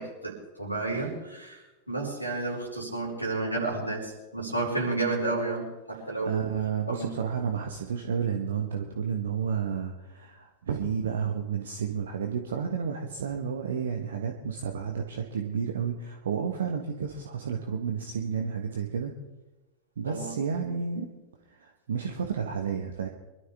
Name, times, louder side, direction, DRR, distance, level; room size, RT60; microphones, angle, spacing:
voice 1, 0.0-6.5 6.9-7.1 20.0-20.3, right 2 dB, 90° right, -3 dB, 4.9 m, -31 dB
voice 2, 5.9-19.1 20.0-21.1 21.5-23.1, right 7 dB, 65° right, 3 dB, 1.4 m, -31 dB
24.5 x 12.5 x 3.5 m, 1.1 s
figure-of-eight pair, 90°, 0 cm